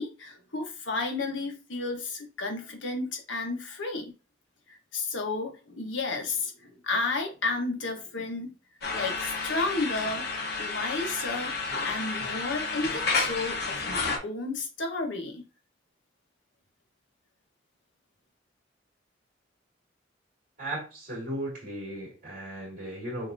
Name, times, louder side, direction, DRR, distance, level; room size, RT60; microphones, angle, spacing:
voice 1, 0.0-4.1 4.7-8.5 8.9-10.2 10.6-11.5 11.8-15.4, left 3 dB, 80° left, 2 dB, 1.2 m, -32 dB
sound 1, 8.8-14.2, left 4 dB, 55° left, 1.0 m, -31 dB
voice 2, 20.6-23.3, right 1 dB, 50° right, -5 dB, 2.5 m, -36 dB
6.3 x 2.9 x 2.7 m, 0.33 s
head